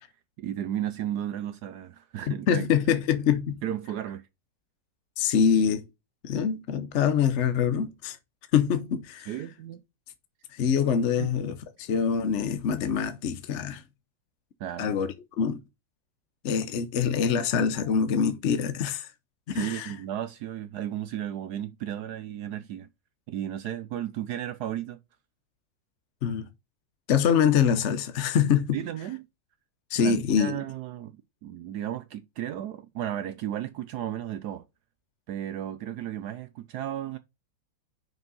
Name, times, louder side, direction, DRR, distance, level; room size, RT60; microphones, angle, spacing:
voice 1, 0.4-2.6 3.6-4.2 9.3-9.8 11.2-11.3 14.6-14.9 19.5-22.9 23.3-25.0 28.7-29.3 30.0-34.6 35.3-37.2, right 11 dB, 70° right, 1.0 m, -34 dB
voice 2, 2.3-3.6 5.2-5.9 6.2-8.2 8.5-9.3 10.5-13.8 14.8-15.6 16.4-19.1 19.5-19.9 26.2-26.5 27.1-28.8 29.9-30.6, left 7 dB, 55° left, 0.8 m, -25 dB
6.1 x 5.3 x 5.4 m
omnidirectional pair, 2.0 m